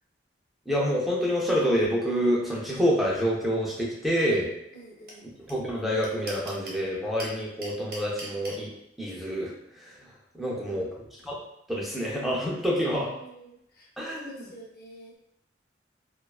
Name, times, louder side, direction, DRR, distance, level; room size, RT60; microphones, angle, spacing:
voice 1, 0.7-4.5 5.5-8.7 9.0-10.0 10.3-10.9 11.2-11.4 11.7-13.1 14.0-14.3, equal, ahead, -5 dB, 0.4 m, -27 dB
voice 2, 4.7-5.3 10.4-10.9 12.8-15.2, right 1 dB, 55° left, -2 dB, 0.6 m, -49 dB
sound 1, 5.1-5.2 5.5-5.6 5.8-6.8 7.2-8.6, right 2 dB, 55° right, 0.7 m, -39 dB
2.4 x 2.3 x 2.3 m, 0.79 s
head